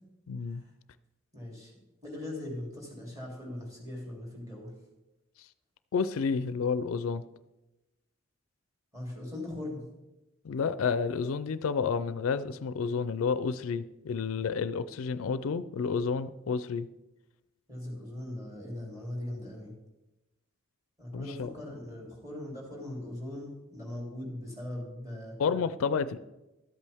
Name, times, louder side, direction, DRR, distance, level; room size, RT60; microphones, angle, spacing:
voice 1, 0.3-0.6 5.9-7.2 10.4-16.9 21.1-21.5 25.4-26.2, left 5 dB, 75° left, 15 dB, 0.4 m, -30 dB
voice 2, 1.3-1.7 2.0-4.7 8.9-9.8 17.7-19.7 21.0-25.4, left 1 dB, 15° right, -2 dB, 2.9 m, -40 dB
13.0 x 8.3 x 3.5 m, 1.0 s
head